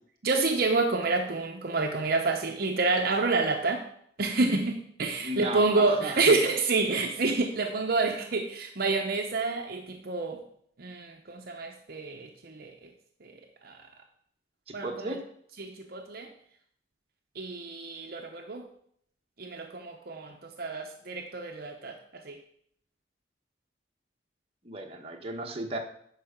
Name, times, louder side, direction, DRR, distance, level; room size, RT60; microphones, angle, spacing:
voice 1, 0.2-3.9 4.2-10.4 10.8-12.9 13.2-13.3 13.6-13.8 14.7-15.2 15.6-16.3 17.3-18.6 19.4-22.0 22.2-22.4, right 3 dB, 60° right, 3 dB, 0.9 m, -28 dB
voice 2, 5.2-6.2 14.7-15.2 24.6-25.8, right 2 dB, 35° right, 2 dB, 1.3 m, -35 dB
10.5 x 4.8 x 6.6 m, 0.66 s
head